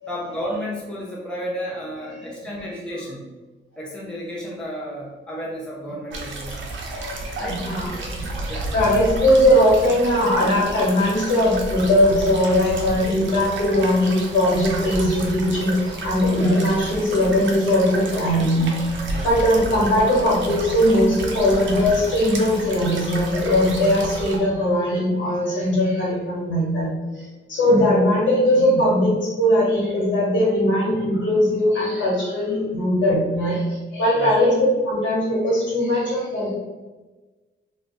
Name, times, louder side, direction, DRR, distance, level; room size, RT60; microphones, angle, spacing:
voice 1, 0.1-3.2 3.8-6.7 7.4-7.6 8.5-8.7 16.4-16.6 19.1-19.3 27.7-27.9 34.1-34.3, equal, 5° left, -5 dB, 0.5 m, -32 dB
sound 1, 6.1-24.4, right 2 dB, 70° right, 0.6 m, -32 dB
voice 2, 6.9-7.9 8.2-8.3 8.7-18.7 19.2-26.9 27.1-36.5, left 1 dB, 70° left, -5 dB, 1.4 m, -20 dB
2.4 x 2.3 x 4.0 m, 1.2 s
wide cardioid pair, 175°, 20 cm